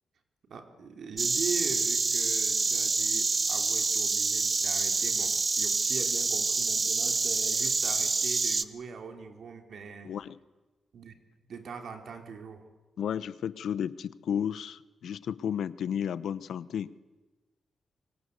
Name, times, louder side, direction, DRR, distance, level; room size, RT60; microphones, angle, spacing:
voice 1, 0.5-10.2 10.9-11.1 11.5-12.7, right 5 dB, 70° right, 5 dB, 3.5 m, -41 dB
Insect, 1.2-8.6, right 4 dB, 40° right, 1.1 m, -27 dB
voice 2, 10.0-10.3 13.0-16.9, left 8 dB, 85° left, 16 dB, 0.9 m, -33 dB
27.0 x 24.5 x 8.2 m, 1.2 s
cardioid pair, 95°, 0 cm